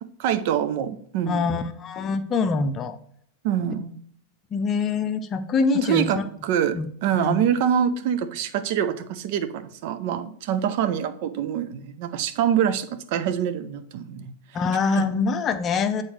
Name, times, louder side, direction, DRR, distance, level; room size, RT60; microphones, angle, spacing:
voice 1, 0.0-1.5 3.4-4.0 5.7-14.3 14.9-15.1, right 9 dB, 50° right, 11 dB, 0.5 m, -25 dB
voice 2, 1.3-3.0 4.5-6.1 6.7-7.4 14.5-16.0, left 4 dB, 25° left, 9 dB, 0.6 m, -24 dB
8.5 x 4.0 x 3.2 m, 0.64 s
figure-of-eight pair, 90°, 0 cm